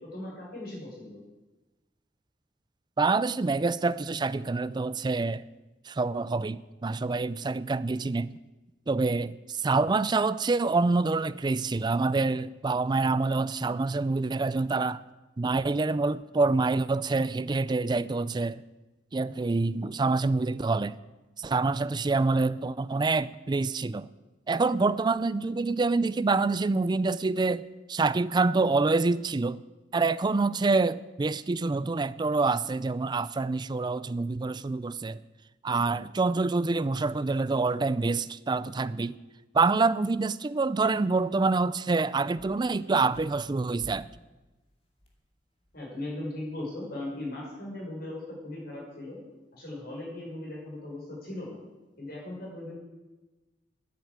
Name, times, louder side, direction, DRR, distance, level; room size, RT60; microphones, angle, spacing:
voice 1, 0.0-1.2 20.4-20.5 45.7-49.2 49.5-51.6 52.0-52.7, left 1 dB, 60° left, 5.7 m, -38 dB
voice 2, 3.0-5.4 5.9-8.4 8.9-15.0 15.4-18.6 19.1-20.9 21.4-24.1 24.5-27.6 27.9-29.6 29.9-35.2 35.6-39.2 39.5-44.1, right 3 dB, 25° right, 0.4 m, -26 dB
sound 1, 42.4-45.2 45.6-46.0 46.7-46.8, equal, 35° left, 2.5 m, -53 dB
10.5 x 9.3 x 8.4 m
head